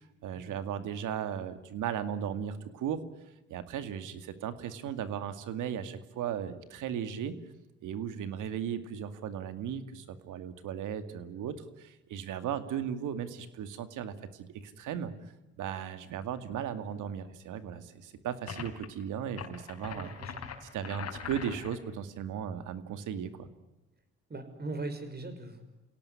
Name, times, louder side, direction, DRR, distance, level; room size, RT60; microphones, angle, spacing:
voice 1, 0.2-3.0 3.5-7.4 7.8-15.1 15.6-20.1 20.6-23.5, right 9 dB, 85° right, 11 dB, 2.3 m, -36 dB
sound 1, 18.5-18.9 19.3-21.8, left 6 dB, 55° left, 4.5 m, -42 dB
voice 2, 19.9-20.5 24.3-25.6, right 2 dB, 35° right, 8 dB, 5.9 m, -40 dB
28.5 x 17.5 x 9.7 m, 1.0 s
cardioid pair, 90°, 30 cm